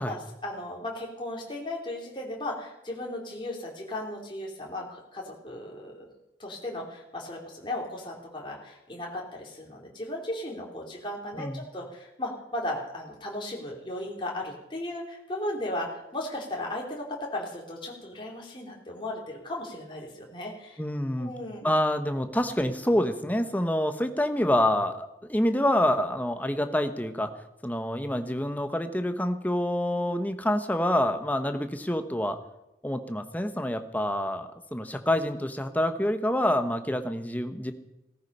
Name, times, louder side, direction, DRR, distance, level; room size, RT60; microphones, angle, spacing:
voice 1, 0.0-6.1 6.4-20.8 21.2-21.7, left 1 dB, 25° left, -2 dB, 3.0 m, -36 dB
voice 2, 20.8-21.3 21.6-27.3 27.6-32.4 32.8-37.7, left 1 dB, 10° left, 8 dB, 1.0 m, -27 dB
17.0 x 14.0 x 5.5 m, 0.91 s
head